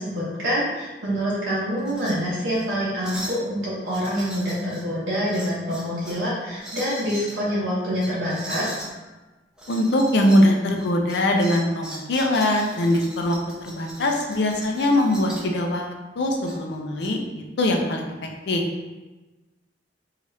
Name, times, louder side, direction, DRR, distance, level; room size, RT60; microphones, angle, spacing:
voice 1, 0.0-8.8, equal, 90° right, -8 dB, 0.8 m, -26 dB
sound 1, 1.8-2.1 2.5-2.7 3.0-3.4 3.9-4.8 5.3-6.2 6.6-7.4 8.0-8.9 9.6-10.5 10.8-15.5 16.4-17.1, right 1 dB, 5° right, 0.4 m, -39 dB
voice 2, 9.7-18.1 18.5-18.6, left 1 dB, 65° left, 2 dB, 0.4 m, -22 dB
2.8 x 2.4 x 3.0 m, 1.1 s
head